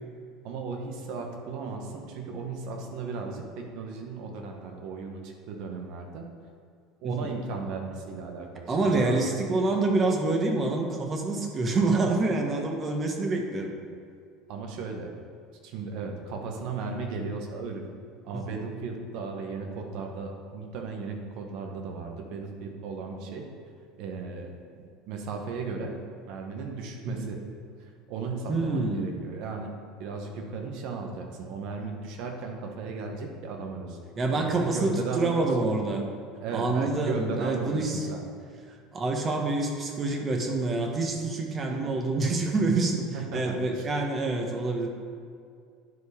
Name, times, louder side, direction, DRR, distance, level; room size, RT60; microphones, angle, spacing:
voice 1, 0.4-6.3 7.0-9.2 14.5-15.1 15.6-17.8 18.2-23.4 24.0-26.0 26.2-27.4 27.8-29.7 30.0-34.0 34.4-35.4 36.4-38.2 41.7-41.9 43.1-43.9, right 4 dB, 60° right, 2 dB, 1.4 m, -36 dB
voice 2, 8.7-13.7 18.5-18.6 27.1-27.3 28.5-29.2 34.2-36.1 36.5-38.1 38.9-43.0 43.3-45.0, right 3 dB, 35° right, 2 dB, 1.5 m, -27 dB
10.5 x 4.8 x 5.1 m, 2.3 s
hypercardioid pair, 75°, 0 cm